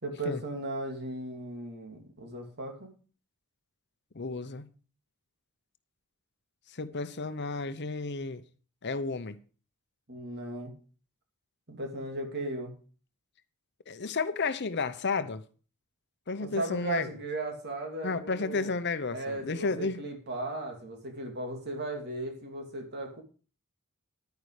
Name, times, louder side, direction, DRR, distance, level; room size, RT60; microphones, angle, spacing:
voice 1, 0.0-3.0 10.1-10.7 11.7-12.7 16.4-18.7 19.1-23.2, right 2 dB, 50° right, 2.9 m, -36 dB
voice 2, 4.1-4.7 6.7-8.4 8.8-9.4 13.9-15.4 16.3-17.1 18.0-20.0, left 4 dB, 50° left, 0.9 m, -32 dB
10.5 x 9.6 x 4.9 m
head